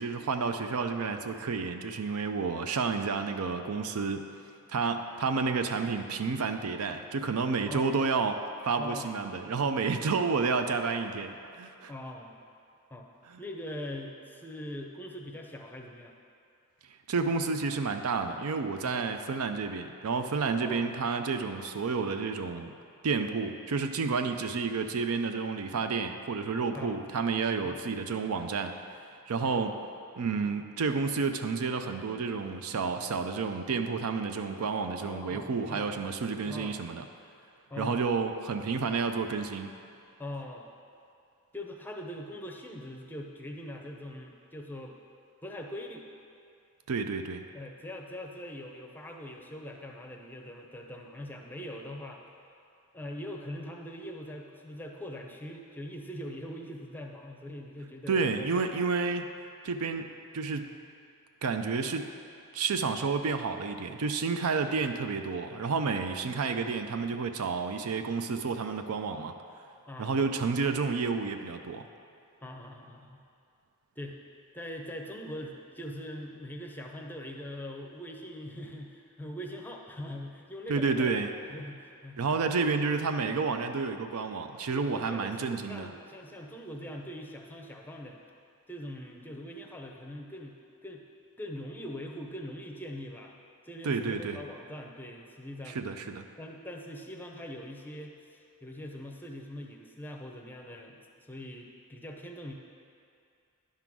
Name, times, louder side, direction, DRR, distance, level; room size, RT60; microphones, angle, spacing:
voice 1, 0.0-4.2 4.7-11.9 13.3-13.4 17.1-22.7 23.0-28.7 29.3-29.7 30.2-37.0 37.8-39.7 46.9-47.4 58.1-59.3 59.6-60.7 61.4-62.1 62.5-69.3 70.0-71.8 80.7-81.3 82.2-85.9 93.8-94.4 95.7-96.2, right 4 dB, 75° right, 7 dB, 0.5 m, -30 dB
voice 2, 7.7-8.1 8.8-9.3 11.9-12.4 12.9-13.1 13.4-16.1 18.8-19.1 20.6-21.0 26.7-27.0 27.6-27.8 29.4-29.6 35.0-36.0 36.4-36.8 37.7-38.0 40.2-40.7 41.5-45.0 45.4-46.0 47.5-52.2 52.9-58.7 69.9-70.2 72.4-73.2 74.0-74.2 74.5-81.1 81.5-82.2 82.6-82.7 83.2-83.4 84.7-88.2 88.7-90.5 90.8-91.0 91.4-93.3 93.7-95.8 96.4-101.0 101.3-102.5, left 1 dB, 10° left, 1 dB, 0.6 m, -42 dB
10.0 x 3.8 x 6.0 m, 2.5 s
head